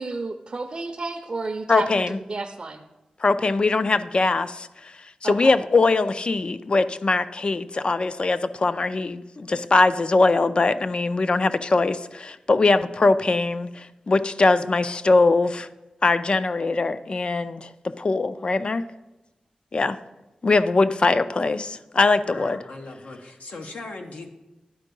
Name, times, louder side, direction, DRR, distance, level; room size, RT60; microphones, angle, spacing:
voice 1, 0.0-2.8 5.2-5.5, right 3 dB, 40° right, 3 dB, 0.5 m, -31 dB
voice 2, 1.7-2.2 3.2-4.7 5.2-15.7 16.0-17.7 18.0-18.8 19.7-20.0 20.4-22.6, left 3 dB, 45° left, 12 dB, 0.4 m, -21 dB
voice 3, 22.2-24.3, left 2 dB, 90° left, 3 dB, 1.0 m, -39 dB
11.0 x 4.5 x 5.2 m, 1.0 s
wide cardioid pair, 95°, 2 cm